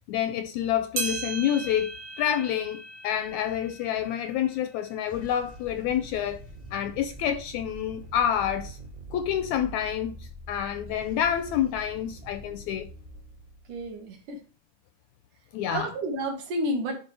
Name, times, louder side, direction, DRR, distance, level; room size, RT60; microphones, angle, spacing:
voice 1, 0.1-1.9 2.2-6.4 6.7-8.8 9.1-12.9 15.5-15.9, left 10 dB, 80° left, 1.6 m, -28 dB
sound 1, 1.0-5.6 6.1-6.2 7.0-7.1 8.0-8.1, right 4 dB, 50° right, 1.6 m, -38 dB
sound 2, 3.2-3.9 4.9-14.3, right 1 dB, 30° right, 0.8 m, -45 dB
voice 2, 13.7-14.4 15.7-17.0, right 1 dB, 75° right, 3.1 m, -30 dB
11.5 x 4.1 x 3.3 m
omnidirectional pair, 3.7 m